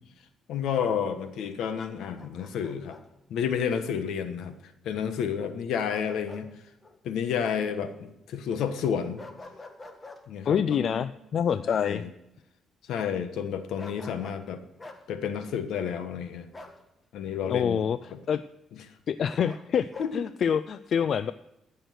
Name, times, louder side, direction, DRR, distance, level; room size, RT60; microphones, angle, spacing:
voice 1, 0.5-3.0 3.3-4.5 4.8-6.5 7.0-9.2 10.3-11.0 11.6-12.1 12.9-14.6 15.1-16.5 17.1-17.8 20.0-20.1, left 7 dB, 80° left, 9 dB, 1.3 m, -30 dB
Bark, 2.0-3.0 5.9-6.5 6.8-7.0 9.2-10.2 13.8-14.4 14.8-15.0 16.5-16.8 19.2-20.1, left 2 dB, 30° left, 1.6 m, -46 dB
voice 2, 10.5-12.0 17.5-18.4 19.1-21.3, left 7 dB, 60° left, 14 dB, 0.4 m, -26 dB
15.5 x 6.5 x 6.4 m, 0.89 s
cardioid pair, 90°, 0 cm